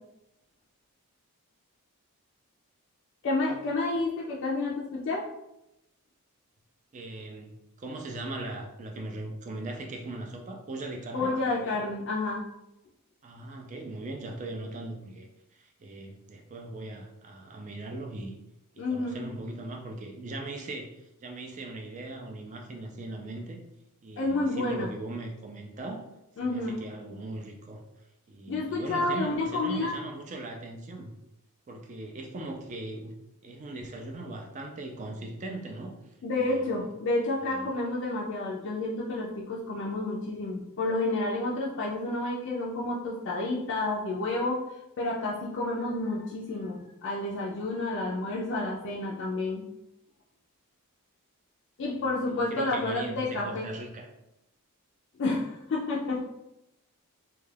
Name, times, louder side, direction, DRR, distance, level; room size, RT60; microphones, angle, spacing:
voice 1, 3.2-5.3 11.1-12.4 18.8-19.2 24.2-24.9 26.4-26.9 28.5-29.9 36.2-44.6 45.0-49.6 51.8-53.7 55.2-56.3, left 2 dB, 55° left, -3 dB, 0.4 m, -30 dB
voice 2, 6.9-11.3 11.6-11.8 13.2-18.3 18.7-23.6 24.0-26.1 26.4-27.8 28.3-31.1 31.7-36.0 36.4-36.8 37.4-37.7 52.3-54.1, right 2 dB, 35° right, 2 dB, 0.3 m, -39 dB
2.3 x 2.2 x 3.2 m, 0.87 s
head